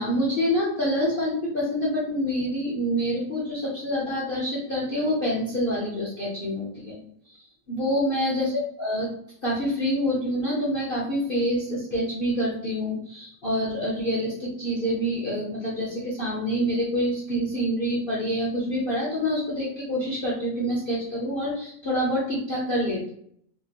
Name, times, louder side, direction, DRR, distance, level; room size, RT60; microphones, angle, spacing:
voice 1, 0.0-7.0 7.3-7.4 7.7-9.1 9.4-23.1, equal, 50° left, -6 dB, 0.6 m, -26 dB
3.7 x 2.9 x 2.4 m, 0.68 s
omnidirectional pair, 1.9 m